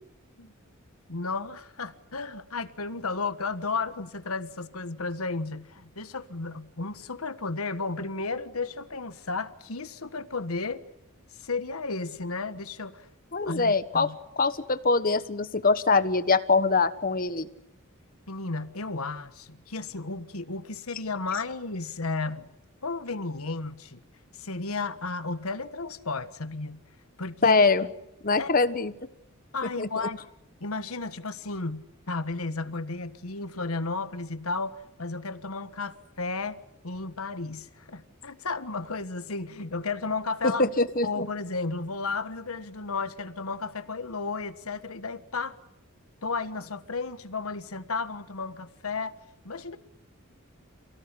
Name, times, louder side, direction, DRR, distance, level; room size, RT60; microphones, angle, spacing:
voice 1, 1.1-10.8 11.4-13.1 13.5-14.2 18.3-22.5 22.8-24.0 24.3-26.8 27.2-27.6 28.4-28.5 29.5-30.2 30.6-36.6 36.8-40.6 41.0-45.6 46.2-49.1 49.4-49.8, left 3 dB, 85° left, 1.5 m, -33 dB
voice 2, 13.3-14.1 14.4-17.5 27.4-27.9 28.2-28.9 29.8-29.9 40.4-41.3, left 3 dB, 40° left, 1.3 m, -23 dB
28.5 x 17.5 x 9.9 m
head